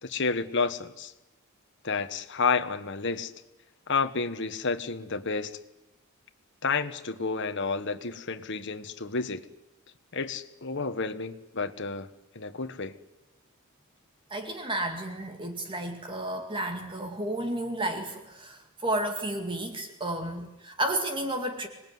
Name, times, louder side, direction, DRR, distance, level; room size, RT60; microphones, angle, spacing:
voice 1, 0.0-1.1 1.8-3.3 3.9-5.6 6.6-9.5 10.1-12.1 12.3-12.9, left 4 dB, 55° left, 8 dB, 1.5 m, -30 dB
voice 2, 14.3-21.7, right 1 dB, 25° right, 5 dB, 2.2 m, -32 dB
26.0 x 20.0 x 9.6 m, 0.97 s
head